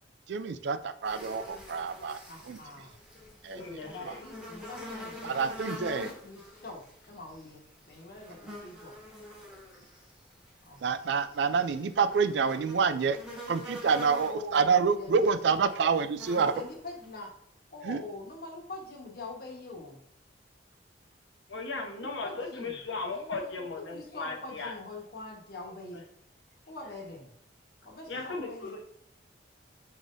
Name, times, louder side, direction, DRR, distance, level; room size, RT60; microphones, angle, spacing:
voice 1, 0.3-2.2 2.4-2.6 3.4-3.6 4.0-4.1 5.2-6.1 8.5-8.6 10.8-13.2 13.5-16.6 17.8-18.0, right 5 dB, 65° right, 12 dB, 0.3 m, -27 dB
sound 1, 1.0-17.3, left 1 dB, 5° right, 1.0 m, -46 dB
voice 2, 2.3-3.0 3.8-5.4 5.7-8.9 10.7-10.8 14.2-15.5 16.5-17.3 17.7-20.0 22.0-22.8 23.1-23.7 23.9-26.1 26.7-27.3 27.8-28.8, left 2 dB, 55° left, -1 dB, 1.3 m, -44 dB
voice 3, 3.5-4.2 21.5-24.7 26.8-26.9 28.1-28.8, left 3 dB, 80° left, 1 dB, 1.0 m, -37 dB
4.9 x 3.7 x 2.6 m, 0.72 s
head